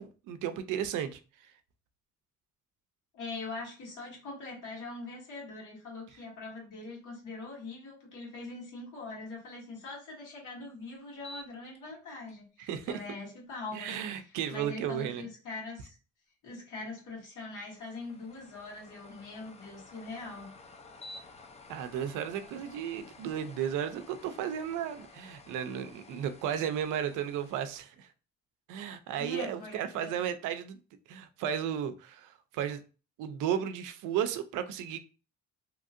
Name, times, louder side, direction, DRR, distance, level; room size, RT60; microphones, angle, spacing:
voice 1, 0.0-1.5 12.6-13.0 13.7-15.3 21.7-28.1 28.7-30.8 31.1-32.8 33.2-35.0, right 9 dB, 85° right, 0.5 m, -34 dB
voice 2, 3.1-14.0 14.2-15.9 16.4-20.5 29.2-30.1, left 3 dB, 85° left, 1.5 m, -42 dB
sound 1, 11.2-11.8 12.3-12.4 17.5-27.8, left 2 dB, 20° left, 0.4 m, -52 dB
2.9 x 2.6 x 2.5 m
cardioid pair, 90°, 30 cm